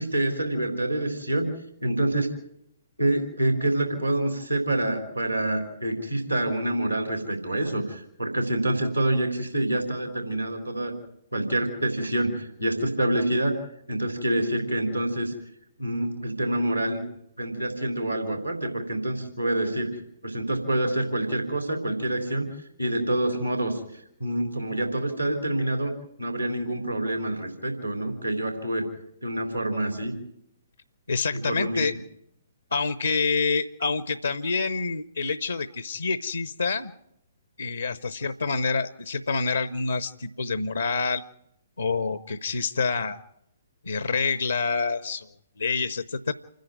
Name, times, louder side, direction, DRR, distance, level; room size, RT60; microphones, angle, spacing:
voice 1, 0.0-1.5 1.8-2.3 3.0-10.9 11.3-13.6 13.9-15.3 15.8-17.0 17.4-19.9 20.2-22.5 22.8-25.9 26.2-28.9 29.2-30.2 31.3-31.8, right 1 dB, 90° right, 4 dB, 3.6 m, -27 dB
voice 2, 31.1-31.9 32.7-36.9 37.6-41.2 41.8-43.2 43.8-45.3 45.6-46.3, left 4 dB, 75° left, 14 dB, 0.8 m, -27 dB
28.0 x 10.5 x 9.4 m, 0.79 s
figure-of-eight pair, 125°, 0 cm